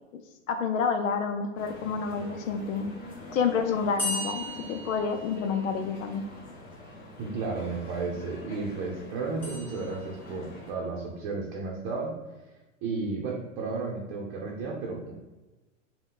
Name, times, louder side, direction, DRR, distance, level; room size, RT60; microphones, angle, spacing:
voice 1, 0.5-2.9 3.3-6.2, left 5 dB, 80° left, 6 dB, 0.6 m, -29 dB
sound 1, 1.6-10.7, left 1 dB, 25° left, 1.4 m, -45 dB
sound 2, 4.0-6.0 9.4-10.5, left 1 dB, 5° left, 0.4 m, -37 dB
voice 2, 7.2-12.1 12.8-15.1, right 4 dB, 35° right, -2 dB, 0.8 m, -33 dB
5.5 x 2.3 x 3.7 m, 1.1 s
hypercardioid pair, 140°, 40 cm